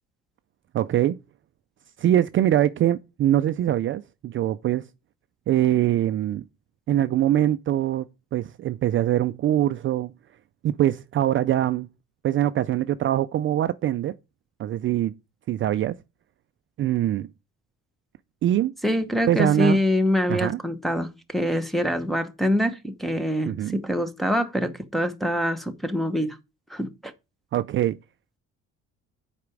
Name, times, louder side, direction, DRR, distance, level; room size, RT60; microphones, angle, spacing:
voice 1, 0.7-1.2 2.0-4.9 5.5-6.4 6.9-8.1 8.3-10.1 10.6-11.9 12.2-14.1 14.6-15.1 15.5-16.0 16.8-17.3 18.4-18.7 19.3-19.8 20.3-20.6 23.5-23.8 27.5-28.0, right 12 dB, 45° right, 0.4 m, -23 dB
voice 2, 18.8-26.4 26.7-27.1, equal, ahead, 1.0 m, -25 dB
8.3 x 4.9 x 4.7 m
cardioid pair, 130°, 30 cm